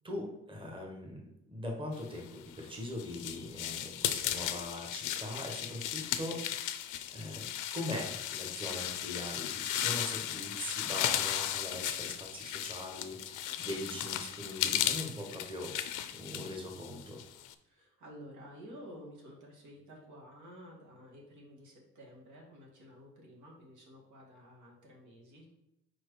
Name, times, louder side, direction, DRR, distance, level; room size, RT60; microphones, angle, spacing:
voice 1, 0.0-6.4 7.1-17.2, left 1 dB, 15° right, 0 dB, 1.3 m, -41 dB
sound 1, 2.4-17.5, left 11 dB, 85° left, 0.5 m, -36 dB
voice 2, 17.6-25.6, equal, 75° right, -2 dB, 1.9 m, -52 dB
4.8 x 4.4 x 4.8 m, 0.85 s
cardioid pair, 90°, 30 cm